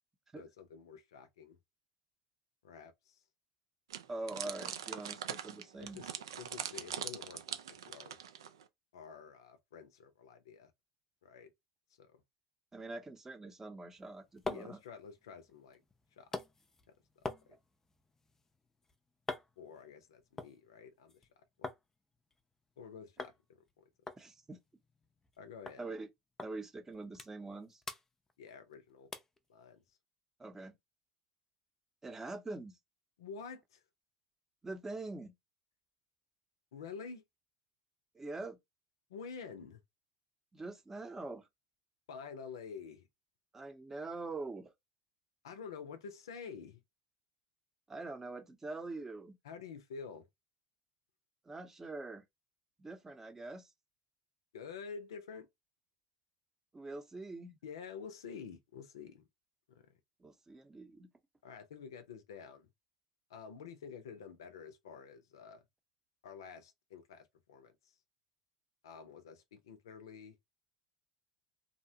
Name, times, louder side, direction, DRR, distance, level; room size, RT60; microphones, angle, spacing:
voice 1, 0.3-1.6 2.6-3.2 5.8-8.2 8.9-10.7 11.2-11.5 12.0-12.2 14.5-15.8 16.1-16.3 17.5-17.6 19.6-21.3 21.6-21.7 22.8-23.8 25.4-25.9 28.4-29.1 29.5-30.0 33.2-33.8 36.7-37.2 39.1-39.8 42.1-43.1 45.4-46.8 49.4-50.3 54.5-55.5 57.6-59.2 59.7-59.9 61.4-62.7 63.3-65.6 66.2-68.0 68.8-70.3, left 6 dB, 80° left, 0.5 m, -49 dB
sound 1, 3.9-8.6, right 9 dB, 85° right, 0.3 m, -42 dB
voice 2, 4.1-6.0 12.7-14.8 24.2-24.6 25.8-26.1 26.4-27.8 30.4-30.7 32.0-32.8 34.6-35.3 38.1-38.6 40.5-41.5 43.5-44.7 47.9-49.4 51.4-52.2 52.8-53.7 56.7-57.6 60.2-61.1, right 2 dB, 15° right, 0.7 m, -44 dB
sound 2, 13.9-21.8 22.1-22.8 23.2-23.4 23.7-23.8 24.1-25.4 25.7-25.8 26.4-26.5 26.9-27.6 27.8-28.7 29.1-29.4 29.9-30.0, left 3 dB, 20° left, 0.4 m, -46 dB
2.6 x 2.1 x 2.7 m
hypercardioid pair, 85°, 2 cm